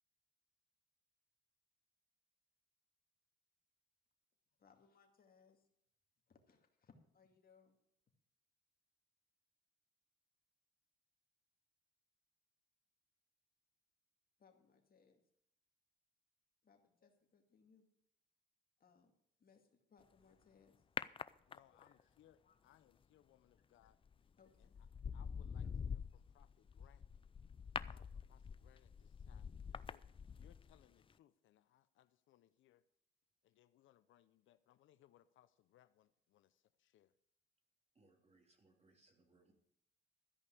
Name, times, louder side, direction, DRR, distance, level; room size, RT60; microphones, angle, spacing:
voice 1, 4.6-5.7 6.3-7.8 14.4-15.2 16.6-17.9 18.8-19.1 19.4-20.8 21.7-22.1 22.4-22.6 23.6-23.7 24.4-24.9, left 5 dB, 50° left, 4 dB, 2.4 m, -69 dB
sound 1, 21.0-22.0 23.9-24.1 24.6-30.8 31.1-31.2, left 6 dB, 25° left, 0.4 m, -46 dB
voice 2, 21.5-24.0 24.6-24.7 25.1-27.0 27.8-30.0 30.4-32.8 33.4-37.1, left 12 dB, 75° left, 13 dB, 0.6 m, -70 dB
voice 3, 37.9-39.5, right 2 dB, 30° right, 3 dB, 2.9 m, -71 dB
13.5 x 5.4 x 8.4 m, 0.75 s
cardioid pair, 90°, 20 cm